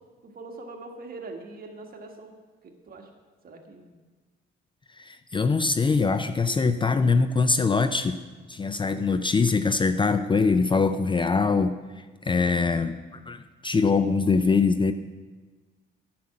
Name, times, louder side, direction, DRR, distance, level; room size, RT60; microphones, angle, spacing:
voice 1, 0.2-2.3 2.6-3.1 3.4-3.9, right 3 dB, 45° right, 2 dB, 1.6 m, -42 dB
voice 2, 5.0-8.2 8.5-11.8 12.2-13.0 13.3-14.9, left 4 dB, 25° left, 10 dB, 0.4 m, -23 dB
9.7 x 5.9 x 7.5 m, 1.4 s
cardioid pair, 90°, 20 cm